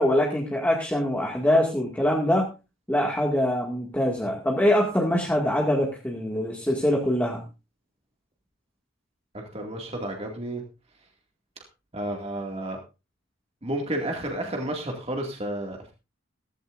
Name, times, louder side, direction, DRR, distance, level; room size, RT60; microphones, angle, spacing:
voice 1, 0.0-2.5 2.9-7.4, left 1 dB, 10° left, -2 dB, 2.1 m, -23 dB
voice 2, 9.3-10.6 11.9-12.8 13.6-15.9, right 1 dB, 30° right, 1 dB, 2.2 m, -31 dB
15.5 x 15.0 x 2.6 m, 0.29 s
head